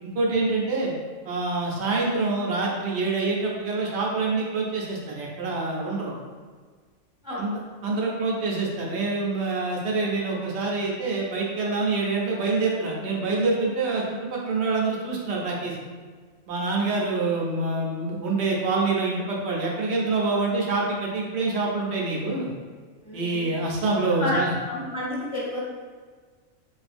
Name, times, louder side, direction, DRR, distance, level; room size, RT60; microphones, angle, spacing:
voice 1, 0.0-0.9 1.2-6.1 7.4-15.7 16.5-22.5 23.1-24.5, right 3 dB, 60° right, -2 dB, 0.8 m, -26 dB
voice 2, 7.2-7.6 23.0-23.5 24.2-24.4 24.7-25.6, left 1 dB, 5° right, -7 dB, 0.7 m, -30 dB
3.9 x 2.4 x 2.5 m, 1.5 s
omnidirectional pair, 1.4 m